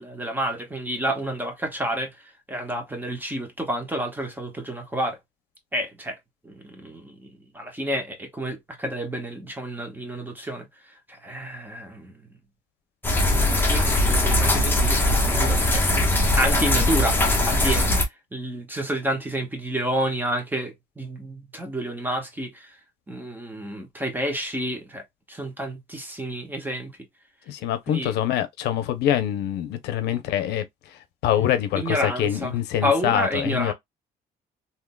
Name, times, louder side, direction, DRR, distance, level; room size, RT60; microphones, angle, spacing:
voice 1, 0.0-5.2 5.7-6.2 6.4-10.7 11.1-12.3 13.2-15.9 16.4-17.2 17.5-17.9 18.3-22.7 23.1-26.9 27.9-28.1 31.8-32.5 32.8-33.7, equal, 10° right, 1.2 m, -29 dB
sound 1, 13.0-18.0, left 1 dB, 10° left, 1.0 m, -20 dB
voice 2, 27.5-33.7, left 11 dB, 80° left, 0.6 m, -25 dB
3.6 x 2.8 x 2.2 m
cardioid pair, 110°, 17 cm